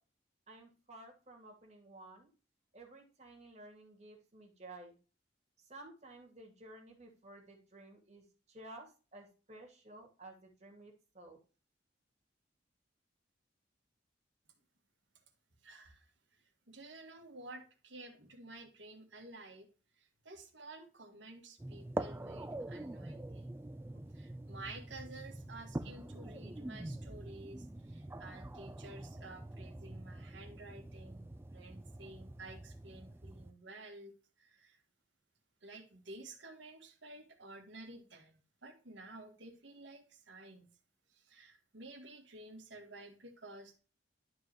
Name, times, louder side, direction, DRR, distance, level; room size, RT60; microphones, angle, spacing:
voice 1, 0.5-2.3 2.7-5.0 5.6-11.4, right 2 dB, 35° right, 1 dB, 2.4 m, -54 dB
voice 2, 15.6-19.7 19.9-23.5 23.9-34.8 35.6-40.7 41.1-43.8, right 2 dB, 70° right, 5 dB, 1.8 m, -52 dB
sound 1, 21.6-33.5, right 1 dB, 10° right, 0.3 m, -45 dB
11.5 x 4.7 x 2.9 m, 0.35 s
head